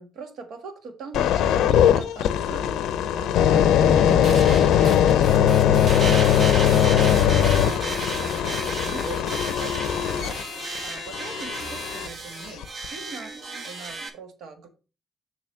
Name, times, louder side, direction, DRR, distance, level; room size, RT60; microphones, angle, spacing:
voice 1, 0.0-10.4 10.8-13.3 13.6-14.7, right 4 dB, 75° right, 6 dB, 1.5 m, -41 dB
sound 1, 1.1-12.1 12.6-12.8, left 9 dB, 85° left, 0.5 m, -20 dB
sound 2, 3.8-14.1, right 3 dB, 50° right, 1.2 m, -34 dB
7.0 x 3.0 x 6.0 m, 0.34 s
cardioid pair, 90°, 0 cm